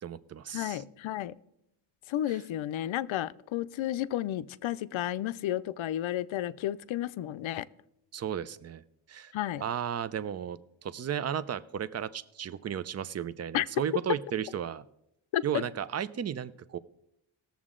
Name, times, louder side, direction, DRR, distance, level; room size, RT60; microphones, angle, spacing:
voice 1, 0.0-0.8 2.3-2.4 8.1-8.8 9.1-9.3 9.6-14.8 15.4-16.8, right 8 dB, 35° right, 16 dB, 0.4 m, -34 dB
voice 2, 0.5-1.3 2.1-7.6 9.3-9.6 13.5-13.7 15.3-15.6, left 13 dB, 80° left, 15 dB, 0.5 m, -32 dB
19.0 x 7.2 x 3.7 m, 0.81 s
wide cardioid pair, 130°, 47 cm